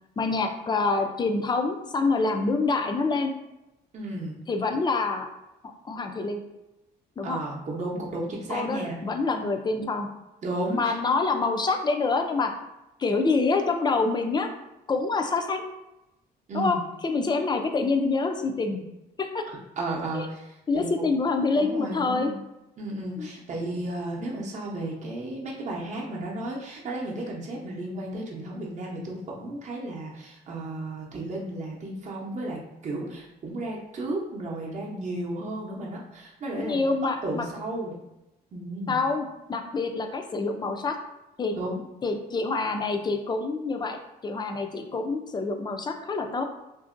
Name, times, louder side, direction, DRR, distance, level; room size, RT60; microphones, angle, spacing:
voice 1, 0.2-3.3 4.5-5.3 5.6-6.4 7.2-7.4 8.5-10.1 10.7-12.5 13.0-14.5 14.9-15.6 16.5-16.8 17.0-18.8 19.2-19.4 20.1-20.3 20.7-22.3 23.2-23.3 36.6-37.5 38.9-41.0 41.4-41.5 42.0-46.4, left 3 dB, 25° left, 5 dB, 0.4 m, -26 dB
voice 2, 3.9-4.4 7.2-9.0 10.4-10.9 16.5-16.8 19.8-21.0 21.5-22.4 22.8-36.8 37.2-38.0 38.5-39.0 41.6-41.8, right 1 dB, 40° right, -2 dB, 0.7 m, -33 dB
2.7 x 2.6 x 2.5 m, 0.94 s
cardioid pair, 85°, 18 cm